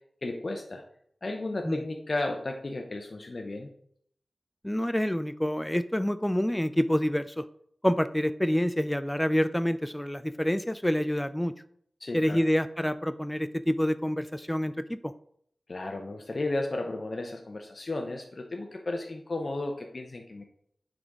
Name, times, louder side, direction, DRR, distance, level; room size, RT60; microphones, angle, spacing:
voice 1, 0.2-0.8 1.2-3.7 12.0-12.4 15.7-20.4, left 2 dB, 55° left, 2 dB, 0.7 m, -34 dB
voice 2, 4.6-7.4 7.8-11.5 12.1-15.1, equal, 10° left, 12 dB, 0.4 m, -27 dB
9.3 x 4.0 x 3.6 m, 0.67 s
cardioid pair, 50°, 0 cm